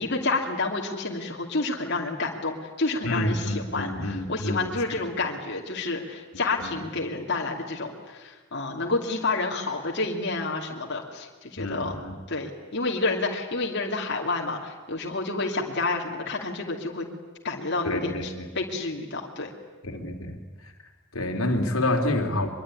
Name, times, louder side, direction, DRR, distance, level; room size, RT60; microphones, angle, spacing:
voice 1, 0.0-12.0 12.3-17.1 17.4-19.5, left 3 dB, 55° left, 0 dB, 2.7 m, -29 dB
voice 2, 3.0-5.0 6.6-6.8 11.6-12.1 17.8-18.5 19.8-20.4 20.6-20.7 21.1-22.5, left 1 dB, 85° left, 3 dB, 3.0 m, -28 dB
23.5 x 23.0 x 9.9 m, 1.3 s
head